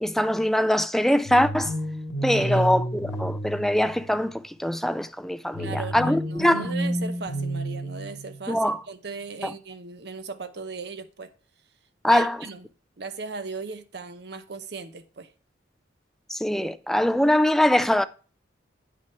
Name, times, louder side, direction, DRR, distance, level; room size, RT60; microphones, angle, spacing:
voice 1, 0.0-1.7 2.2-6.7 8.5-8.8 9.4-9.5 12.0-12.4 16.3-18.0, left 1 dB, ahead, 0.3 m, -23 dB
sound 1, 1.3-4.4 5.5-8.5, right 1 dB, 80° left, 1.9 m, -30 dB
voice 2, 2.3-2.7 5.6-11.3 12.1-12.7 13.0-15.3, right 4 dB, 60° right, 0.9 m, -37 dB
8.9 x 6.0 x 4.5 m
head